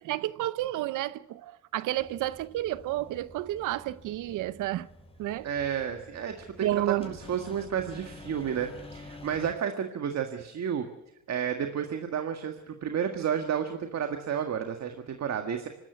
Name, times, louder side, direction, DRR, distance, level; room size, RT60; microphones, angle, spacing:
voice 1, 0.0-4.9 5.2-5.5 6.6-7.1, right 14 dB, 85° right, 0.8 m, -31 dB
sound 1, 2.0-9.5, left 1 dB, 20° left, 4.6 m, -49 dB
voice 2, 5.4-10.8 11.3-15.7, right 8 dB, 60° right, 1.8 m, -31 dB
24.5 x 13.5 x 9.4 m
cardioid pair, 90°, 30 cm